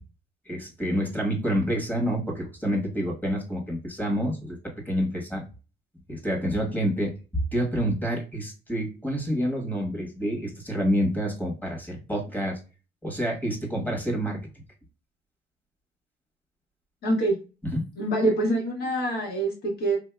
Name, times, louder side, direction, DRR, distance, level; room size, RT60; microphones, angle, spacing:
voice 1, 0.5-4.6 4.8-5.4 6.1-7.1 7.5-12.6 13.0-14.4 17.7-17.8, equal, 10° left, 1 dB, 1.3 m, -28 dB
voice 2, 17.0-17.4 18.0-20.0, right 1 dB, 70° left, 0 dB, 1.6 m, -25 dB
3.8 x 2.7 x 2.3 m, 0.32 s
cardioid pair, 110°, 17 cm